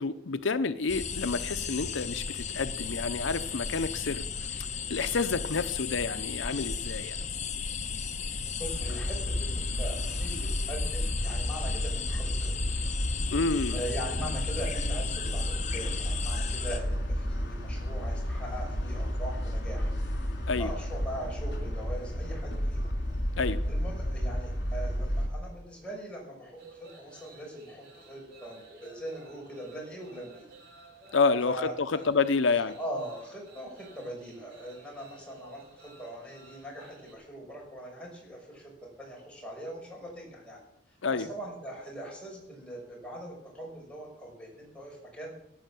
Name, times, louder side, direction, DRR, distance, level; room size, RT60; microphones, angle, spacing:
voice 1, 0.0-4.2 4.5-7.2 13.3-13.8 20.5-20.7 23.4-23.6 31.1-32.8 41.0-41.3, left 4 dB, 75° left, 11 dB, 0.7 m, -29 dB
sound 1, 0.9-16.8, left 5 dB, 35° left, 1.2 m, -35 dB
sound 2, 8.6-25.3, equal, 60° left, 4.0 m, -32 dB
voice 2, 8.6-12.5 13.7-19.9 20.5-22.9 23.7-30.4 31.4-32.0 32.8-38.7 39.0-40.6 41.1-45.3, right 1 dB, 5° left, -2 dB, 6.3 m, -41 dB
sound 3, 26.6-37.1, right 2 dB, 60° right, 7.5 m, -54 dB
17.5 x 10.0 x 7.6 m, 0.79 s
head